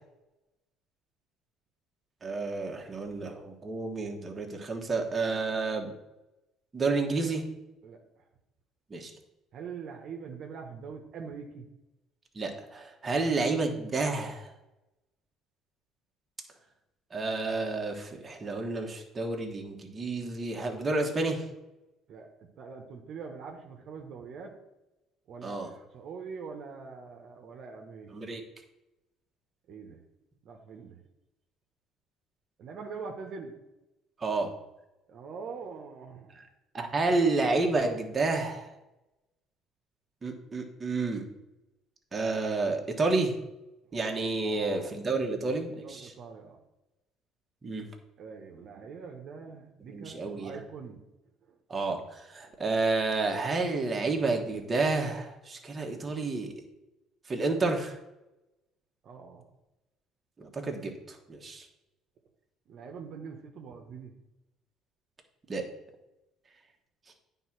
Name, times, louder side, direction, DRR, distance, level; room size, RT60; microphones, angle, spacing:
voice 1, 2.2-5.9 6.7-7.4 8.9-9.1 12.3-14.5 17.1-21.4 25.4-25.7 28.1-28.4 34.2-34.5 36.4-36.5 36.7-38.7 40.2-41.2 42.1-43.4 43.9-46.1 47.6-47.8 49.9-50.6 51.7-56.5 57.3-58.0 60.4-61.6 65.5-65.6, right 3 dB, 25° right, 2 dB, 1.5 m, -30 dB
voice 2, 9.5-11.7 22.1-22.3 22.6-24.5 25.3-28.1 29.7-30.0 30.4-31.0 32.6-33.5 35.1-36.4 44.4-44.9 45.7-46.6 48.2-51.0 51.5-51.6 52.4-52.5 59.0-59.5 62.7-64.1, right 5 dB, 55° right, 2 dB, 1.2 m, -43 dB
9.2 x 3.7 x 6.0 m, 0.96 s
cardioid pair, 100°, 0 cm